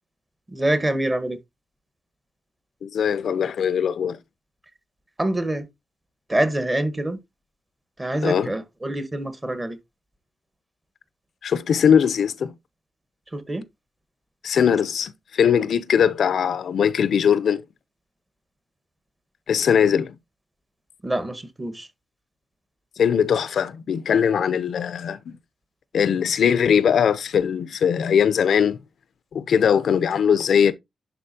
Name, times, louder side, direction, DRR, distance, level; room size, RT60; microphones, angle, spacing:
voice 1, 0.5-1.4 5.2-5.6 6.3-7.2 8.0-9.8 13.3-13.6 21.0-21.9, right 1 dB, 20° right, 1.3 m, -25 dB
voice 2, 2.8-4.2 8.2-8.5 11.4-12.5 14.4-17.6 19.5-20.1 23.0-25.4 25.9-28.8 29.3-30.7, left 7 dB, 75° left, 0.6 m, -20 dB
11.0 x 4.1 x 2.8 m
wide cardioid pair, 115°, 0 cm